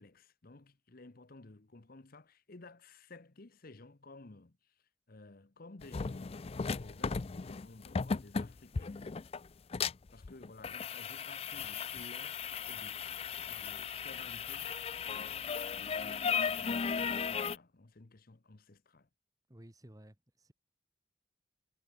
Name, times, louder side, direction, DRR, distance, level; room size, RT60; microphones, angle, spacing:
voice 1, 0.0-9.1 10.1-15.5 15.7-19.1, left 2 dB, 45° left, 0.9 m, -55 dB
sound 1, 5.8-17.6, left 5 dB, 30° left, 0.4 m, -36 dB
voice 2, 19.5-20.5, right 1 dB, 15° right, 1.4 m, -55 dB
head